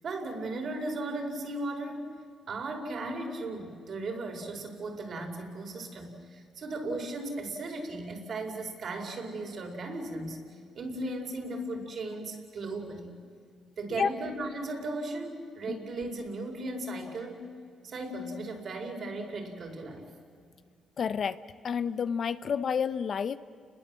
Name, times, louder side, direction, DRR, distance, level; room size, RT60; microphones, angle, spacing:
voice 1, 0.0-2.1 2.5-13.1 13.8-17.5 17.8-20.1, right 2 dB, 55° right, 3 dB, 4.5 m, -36 dB
voice 2, 21.0-21.4 21.6-23.4, left 6 dB, 55° left, 14 dB, 0.7 m, -29 dB
30.0 x 21.0 x 7.6 m, 2.2 s
cardioid pair, 90°, 0 cm